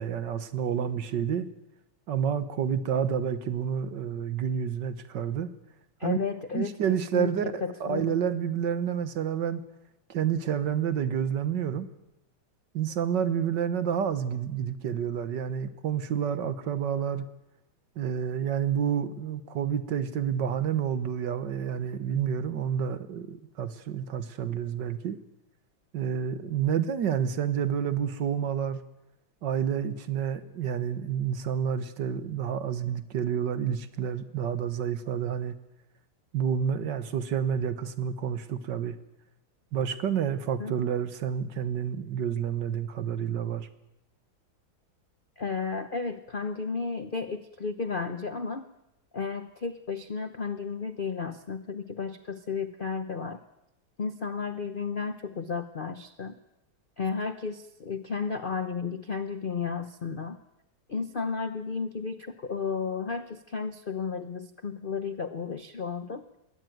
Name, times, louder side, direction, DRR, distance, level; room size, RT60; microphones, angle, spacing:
voice 1, 0.0-1.5 2.1-5.5 6.0-6.2 6.5-9.6 10.1-11.9 12.7-17.2 18.0-25.2 25.9-28.8 29.4-35.5 36.3-39.0 39.7-43.7, right 8 dB, 60° right, 12 dB, 1.7 m, -29 dB
voice 2, 6.0-8.2 40.6-40.7 45.4-48.7 49.1-53.4 54.0-56.3 57.0-60.4 60.9-66.2, left 5 dB, 55° left, 10 dB, 0.5 m, -33 dB
21.5 x 17.5 x 9.2 m, 0.90 s
omnidirectional pair, 2.3 m